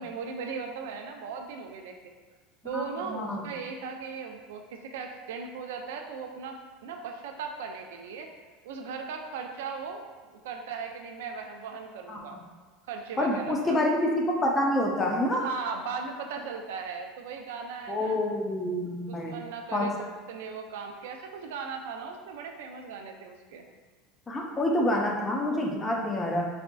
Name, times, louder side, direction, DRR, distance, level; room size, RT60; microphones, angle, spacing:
voice 1, 0.0-2.0 2.6-8.3 8.6-12.4 12.9-13.8 15.4-18.2 19.1-19.9 20.3-23.6, right 5 dB, 90° right, 4 dB, 0.4 m, -38 dB
voice 2, 2.7-3.4 12.1-12.4 13.2-15.4 17.9-19.4 19.7-19.9 24.3-26.5, left 1 dB, 20° left, 0 dB, 0.5 m, -27 dB
4.1 x 2.5 x 2.2 m, 1.4 s
supercardioid pair, 130°, 0 cm